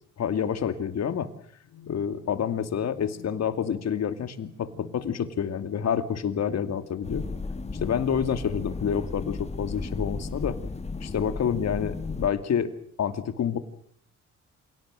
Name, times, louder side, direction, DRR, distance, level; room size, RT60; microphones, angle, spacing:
voice 1, 0.2-1.3 1.9-7.3 7.8-10.6 11.0-12.7 13.0-13.6, left 8 dB, 60° left, 11 dB, 2.5 m, -28 dB
sound 1, 1.6-8.0, left 8 dB, 80° left, 4.9 m, -52 dB
sound 2, 7.0-12.3, left 4 dB, 20° left, 1.7 m, -34 dB
27.5 x 18.0 x 7.6 m, 0.64 s
cardioid pair, 90°, 30 cm